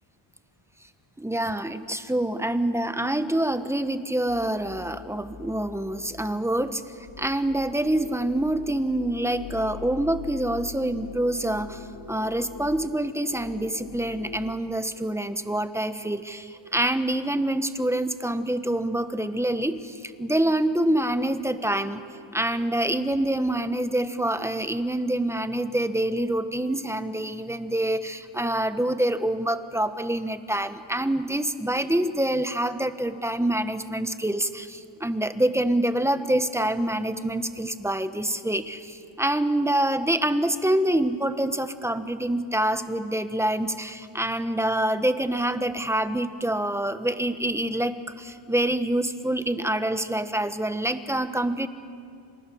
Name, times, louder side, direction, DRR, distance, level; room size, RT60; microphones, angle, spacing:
voice 1, 1.2-6.8 7.2-11.8 12.1-22.0 22.3-51.7, right 1 dB, 5° right, 10 dB, 1.2 m, -26 dB
sound 1, 4.3-14.5, left 7 dB, 75° left, 4.0 m, -43 dB
30.0 x 26.5 x 7.1 m, 2.4 s
cardioid pair, 115°, 49 cm